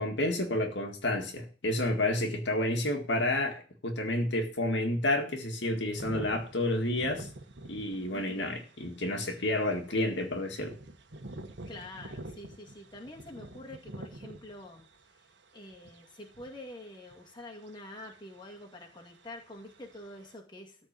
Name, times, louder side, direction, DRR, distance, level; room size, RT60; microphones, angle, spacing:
voice 1, 0.0-7.3 7.7-10.7, left 1 dB, 75° left, 1.9 m, -30 dB
sound 1, 5.9-20.3, right 1 dB, 80° right, 1.4 m, -47 dB
voice 2, 8.1-8.6 11.7-14.9 15.5-20.9, left 1 dB, 25° left, 2.1 m, -47 dB
13.5 x 4.5 x 7.5 m
head